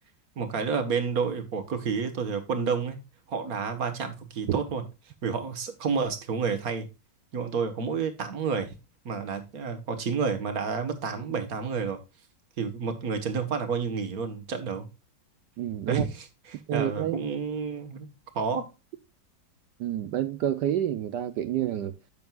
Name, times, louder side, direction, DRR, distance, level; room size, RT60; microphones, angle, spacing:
voice 1, 0.3-3.0 3.3-4.8 5.2-6.9 7.3-8.7 9.0-12.0 12.6-14.9 15.9-18.7, right 5 dB, 50° right, 1.8 m, -30 dB
voice 2, 15.6-16.0 16.7-17.2 19.8-21.9, right 11 dB, 70° right, 1.2 m, -28 dB
10.5 x 7.5 x 2.4 m
omnidirectional pair, 2.1 m